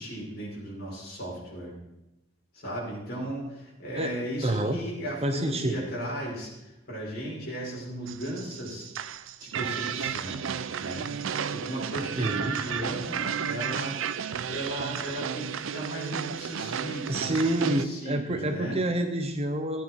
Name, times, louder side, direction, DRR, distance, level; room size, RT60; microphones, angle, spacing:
voice 1, 0.0-1.7 2.5-8.9 9.4-10.4 10.8-11.1 11.5-14.0 14.5-18.8, right 1 dB, 45° left, -5 dB, 5.3 m, -36 dB
voice 2, 4.0-4.8 5.2-5.9 12.1-12.6 17.1-19.8, right 1 dB, 30° right, 6 dB, 0.8 m, -28 dB
sound 1, 8.1-17.9, right 7 dB, 65° right, 0.5 m, -33 dB
16.0 x 9.2 x 4.5 m, 0.94 s
head